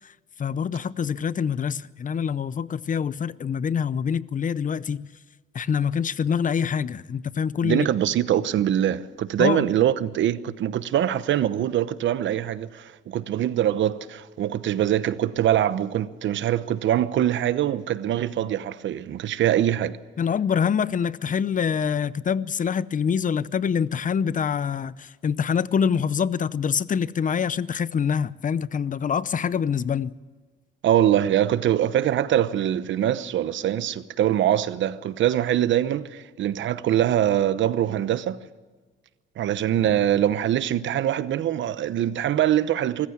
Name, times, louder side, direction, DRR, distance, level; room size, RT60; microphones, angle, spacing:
voice 1, 0.4-5.0 5.5-7.9 9.4-9.7 20.2-30.1, left 7 dB, 40° left, 0.7 m, -25 dB
voice 2, 7.6-20.0 30.8-38.4 39.4-43.1, right 11 dB, 70° right, 1.0 m, -23 dB
24.5 x 15.0 x 7.3 m
cardioid pair, 90°, 20 cm